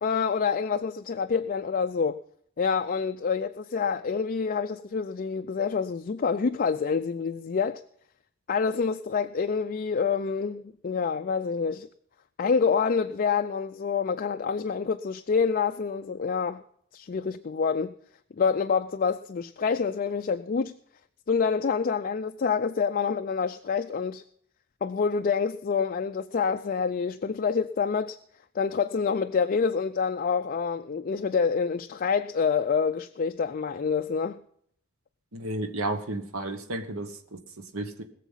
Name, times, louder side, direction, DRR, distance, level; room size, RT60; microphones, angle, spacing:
voice 1, 0.0-2.2 2.6-7.8 8.5-11.9 12.4-16.6 16.9-17.9 18.4-20.8 21.3-24.2 24.8-28.2 28.5-34.4, left 5 dB, 40° left, 0.4 m, -27 dB
voice 2, 35.3-38.0, right 2 dB, 75° right, 1.4 m, -33 dB
20.0 x 7.1 x 5.7 m
head